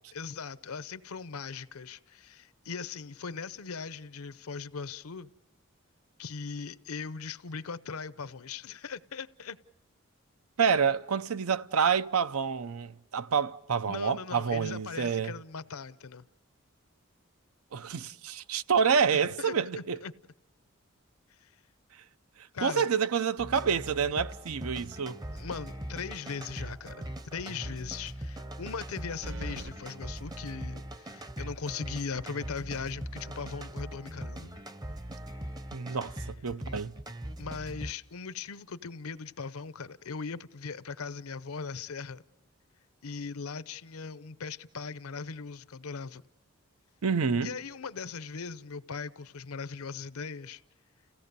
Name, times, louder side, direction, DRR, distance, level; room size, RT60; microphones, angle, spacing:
voice 1, 0.1-5.3 6.2-9.6 13.9-16.3 19.1-20.1 21.4-21.5 22.5-22.9 25.3-34.5 37.4-42.2 43.0-46.2 47.4-50.6, left 5 dB, 85° left, 0.7 m, -39 dB
voice 2, 10.6-15.3 17.7-20.0 22.6-25.2 35.7-36.9 47.0-47.5, right 6 dB, 85° right, 0.6 m, -28 dB
sound 1, 23.4-37.9, right 1 dB, 20° right, 0.6 m, -41 dB
sound 2, 26.1-26.6 26.9-27.0 29.2-29.8, right 2 dB, 55° right, 1.1 m, -40 dB
30.0 x 16.5 x 6.8 m
head